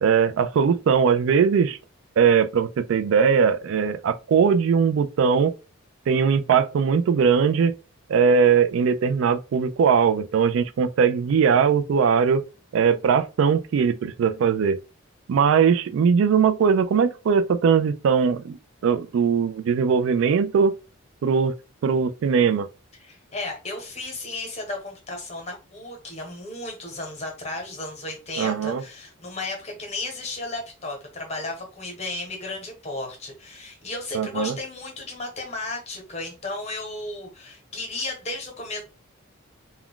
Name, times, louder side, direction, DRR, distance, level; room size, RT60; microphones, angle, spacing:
voice 1, 0.0-1.8 2.2-5.5 6.1-7.7 8.1-12.5 12.7-14.8 15.3-18.6 18.8-20.7 21.2-21.5 21.8-22.7 28.4-28.8 34.1-34.6, right 6 dB, 65° right, 0.3 m, -20 dB
voice 2, 23.0-38.8, left 2 dB, 30° left, 0.9 m, -34 dB
2.3 x 2.2 x 3.6 m
head